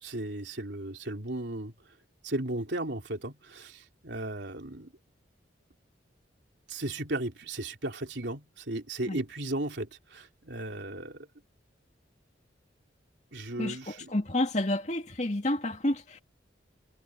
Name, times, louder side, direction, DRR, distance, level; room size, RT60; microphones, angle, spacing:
voice 1, 0.0-1.7 2.2-4.9 6.7-11.3 13.3-14.2, right 1 dB, 70° right, 3.2 m, -35 dB
voice 2, 13.6-16.2, left 1 dB, 40° left, 2.3 m, -30 dB
head